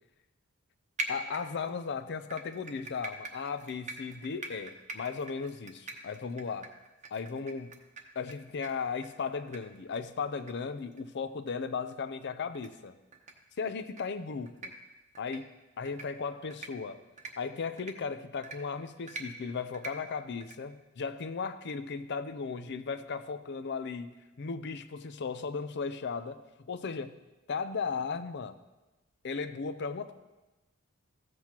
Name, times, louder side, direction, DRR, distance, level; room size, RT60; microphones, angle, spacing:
sound 1, 1.0-1.8 2.3-8.3 8.6-8.7 9.0-9.1 9.5-9.6 9.9-10.0 10.5-10.6 10.9-11.0 11.5-11.6 12.5-12.7 13.1-13.3 13.8-14.0 14.5-14.7 15.2-15.4 15.9-16.1 16.5-16.7 17.2-17.3 17.8-17.9 18.4-18.6 19.1-19.2 19.7-19.9 20.4-20.6, right 3 dB, 35° right, 0.9 m, -41 dB
voice 1, 1.1-6.7 7.1-7.8 8.2-12.9 13.6-14.7 15.2-15.5 15.8-17.0 17.4-24.1 24.4-27.2 27.5-28.6 29.2-30.1, left 5 dB, 55° left, 10 dB, 0.5 m, -36 dB
14.5 x 7.7 x 2.9 m, 1.1 s
head